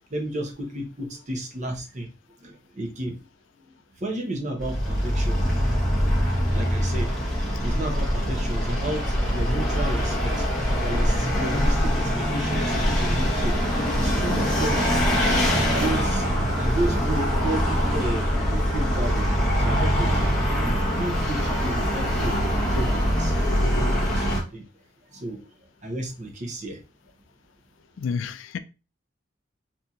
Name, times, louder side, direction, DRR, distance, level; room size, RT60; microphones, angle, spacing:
voice 1, 0.1-2.1 2.4-3.2 4.0-5.6 6.5-7.1 7.6-10.5 10.8-15.0 15.5-16.2 16.6-20.1 20.6-23.4 23.8-24.6 25.1-25.4 25.8-26.8, right 1 dB, 35° right, 0.7 m, -32 dB
Vehicle, 4.6-24.4, equal, 5° left, 0.8 m, -23 dB
voice 2, 28.0-28.6, left 6 dB, 75° left, 0.3 m, -29 dB
4.1 x 2.7 x 2.3 m
head